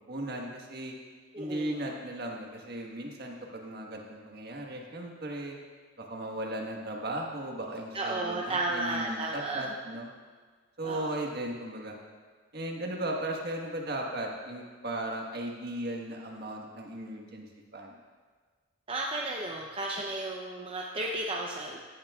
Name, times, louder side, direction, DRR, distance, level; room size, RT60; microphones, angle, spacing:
voice 1, 0.1-0.9 1.4-5.6 6.0-10.1 10.8-11.9 12.5-17.4 17.7-18.0, right 1 dB, 50° right, 0 dB, 1.4 m, -36 dB
voice 2, 1.3-1.8 7.9-9.6 10.8-11.2 18.9-21.8, right 2 dB, 30° right, -1 dB, 0.7 m, -33 dB
15.5 x 11.0 x 2.4 m, 1.5 s
head